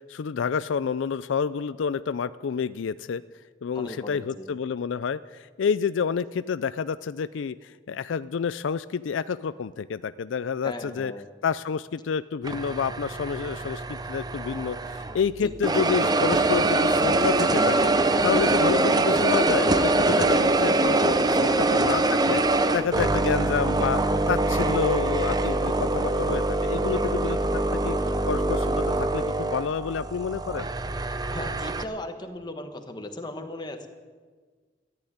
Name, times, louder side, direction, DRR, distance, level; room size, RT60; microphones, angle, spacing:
voice 1, 0.1-3.2 3.6-11.1 11.4-17.9 18.2-22.4 22.7-28.0 28.3-30.7, left 6 dB, 80° left, 15 dB, 0.4 m, -29 dB
voice 2, 3.7-4.5 10.6-11.3 15.4-15.5 18.8-19.0 21.5-21.6 23.1-23.4 31.3-33.9, left 1 dB, 25° left, 6 dB, 1.3 m, -37 dB
sound 1, 12.4-15.2 15.6-31.8, right 2 dB, 20° right, 0.6 m, -24 dB
14.0 x 10.0 x 9.9 m, 1.5 s
head